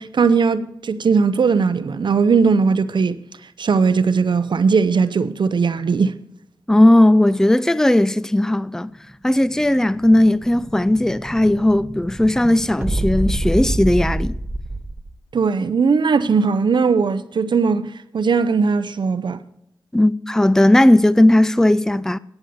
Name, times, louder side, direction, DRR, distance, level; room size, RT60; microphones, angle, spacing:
voice 1, 0.0-3.2 3.6-6.1 15.3-19.4, right 5 dB, 75° right, 0.6 m, -18 dB
voice 2, 6.7-8.9 9.2-14.4 19.9-22.2, left 1 dB, 5° left, 0.5 m, -16 dB
Explosion, 9.1-15.2, right 1 dB, 15° right, 1.7 m, -27 dB
12.0 x 8.0 x 6.7 m
cardioid pair, 45°, 8 cm